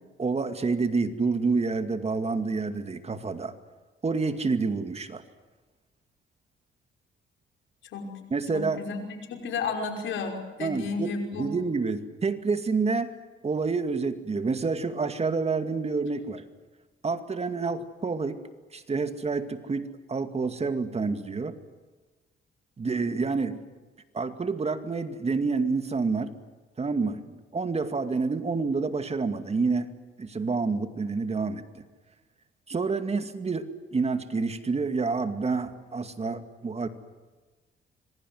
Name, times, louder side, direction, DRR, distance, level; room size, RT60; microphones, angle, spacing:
voice 1, 0.2-3.5 4.0-5.2 8.3-8.8 10.6-13.1 13.4-16.4 17.0-18.4 18.7-21.6 22.8-23.6 24.1-26.3 26.8-29.9 30.2-31.8 32.7-36.9, right 4 dB, 30° right, 9 dB, 2.2 m, -28 dB
voice 2, 7.9-8.2 8.5-11.5, left 4 dB, 75° left, 3 dB, 5.6 m, -33 dB
26.5 x 22.5 x 7.9 m, 1.3 s
cardioid pair, 90°, 20 cm